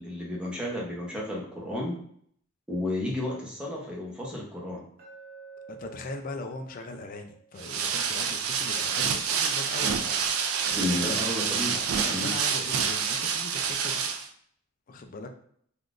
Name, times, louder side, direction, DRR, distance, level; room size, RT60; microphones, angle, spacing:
voice 1, 0.0-1.9 2.7-4.8 10.8-11.8 12.1-12.3, left 1 dB, 5° right, -4 dB, 0.7 m, -32 dB
Glass, 5.0-9.1, right 5 dB, 45° right, 0.8 m, -51 dB
voice 2, 5.7-10.0 10.7-11.2 12.0-14.0 14.9-15.3, left 2 dB, 40° left, 4 dB, 0.3 m, -40 dB
sound 1, 7.6-14.3, right 6 dB, 90° right, 0.4 m, -28 dB
3.4 x 2.3 x 2.4 m, 0.64 s
head